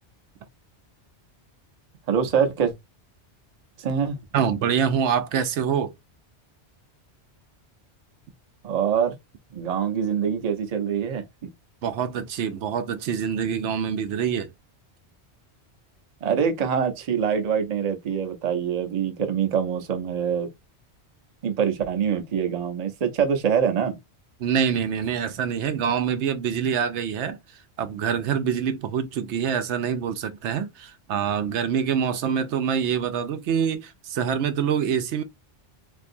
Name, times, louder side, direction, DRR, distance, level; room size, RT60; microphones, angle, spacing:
voice 1, 2.1-2.7 3.8-4.2 8.6-9.2 9.5-11.5 16.2-20.5 21.4-24.0, right 7 dB, 45° right, 0.6 m, -24 dB
voice 2, 4.3-5.9 11.8-14.5 24.4-27.4 27.8-35.2, right 7 dB, 85° right, 0.9 m, -25 dB
3.4 x 2.6 x 2.6 m
omnidirectional pair, 1.2 m